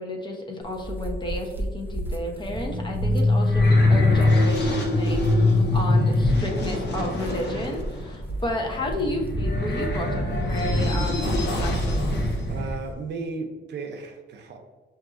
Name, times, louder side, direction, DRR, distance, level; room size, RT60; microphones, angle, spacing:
voice 1, 0.0-12.1, left 1 dB, 25° left, 0 dB, 0.8 m, -32 dB
sound 1, 0.6-12.9, right 1 dB, 10° right, 0.4 m, -33 dB
sound 2, 2.2-12.8, left 2 dB, 60° left, 0.9 m, -23 dB
voice 2, 5.7-6.1 12.5-14.6, right 4 dB, 60° right, 4 dB, 0.6 m, -35 dB
5.9 x 2.6 x 2.5 m, 1.3 s
cardioid pair, 90°, 20 cm